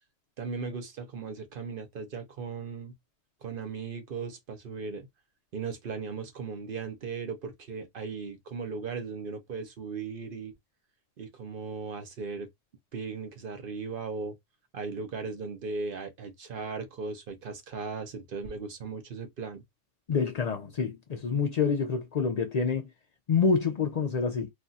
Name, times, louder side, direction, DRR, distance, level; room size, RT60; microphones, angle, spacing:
voice 1, 0.4-2.9 3.4-5.1 5.5-10.5 11.2-12.5 12.9-14.4 14.7-19.6, right 4 dB, 50° right, 0.8 m, -37 dB
voice 2, 20.1-22.9 23.3-24.5, left 5 dB, 85° left, 0.3 m, -27 dB
2.5 x 2.3 x 4.0 m
omnidirectional pair, 1.4 m